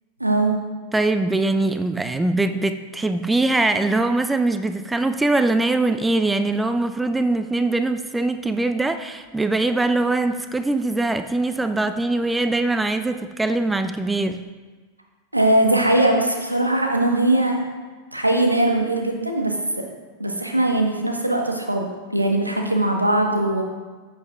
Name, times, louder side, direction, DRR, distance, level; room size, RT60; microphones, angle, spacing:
voice 1, 0.2-0.5 15.3-17.6 18.1-19.8 20.2-23.6, right 1 dB, 85° right, 2 dB, 1.2 m, -20 dB
voice 2, 0.9-14.4, right 2 dB, 10° right, 9 dB, 0.4 m, -22 dB
14.0 x 7.1 x 2.4 m, 1.4 s
figure-of-eight pair, 90°, 0 cm